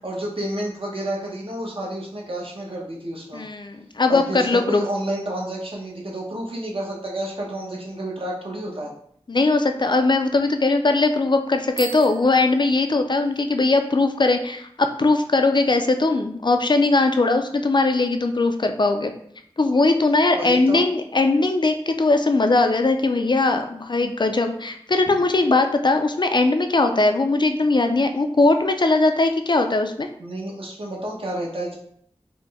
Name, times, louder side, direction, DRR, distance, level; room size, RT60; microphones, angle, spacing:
voice 1, 0.0-3.4 4.1-8.9 20.3-20.8 30.2-31.8, right 1 dB, 60° right, -3 dB, 1.0 m, -30 dB
voice 2, 3.3-4.9 9.3-19.1 19.6-30.1, left 3 dB, 45° left, 6 dB, 0.4 m, -20 dB
Bicycle bell, 11.7-13.4, right 5 dB, 85° right, 0.4 m, -39 dB
4.0 x 2.1 x 3.5 m, 0.66 s
wide cardioid pair, 40°, 11 cm